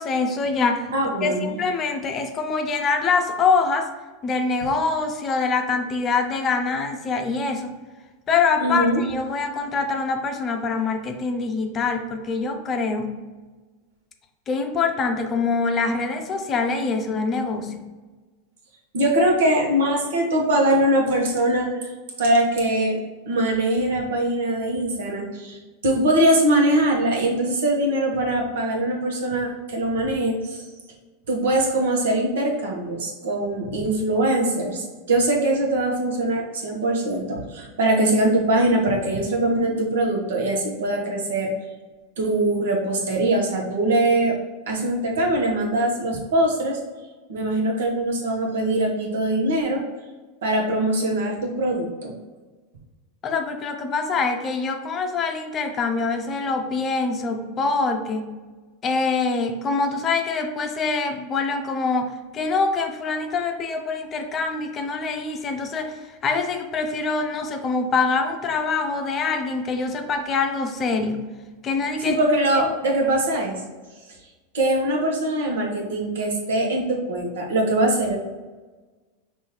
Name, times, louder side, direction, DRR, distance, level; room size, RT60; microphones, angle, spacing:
voice 1, 0.0-0.9 1.2-3.9 4.2-7.8 8.3-13.2 14.5-17.8 53.2-58.3 58.8-65.9 66.2-71.2 71.6-72.2 72.6-72.7, left 4 dB, 30° left, 5 dB, 0.6 m, -24 dB
voice 2, 0.9-1.5 8.6-9.0 18.9-21.9 22.2-23.0 23.3-30.6 31.3-41.5 42.2-44.4 44.7-46.8 47.3-49.8 50.4-52.2 72.0-73.6 74.5-78.2, right 1 dB, 75° right, 0 dB, 1.1 m, -22 dB
5.5 x 2.7 x 3.1 m, 1.3 s
hypercardioid pair, 95°, 0 cm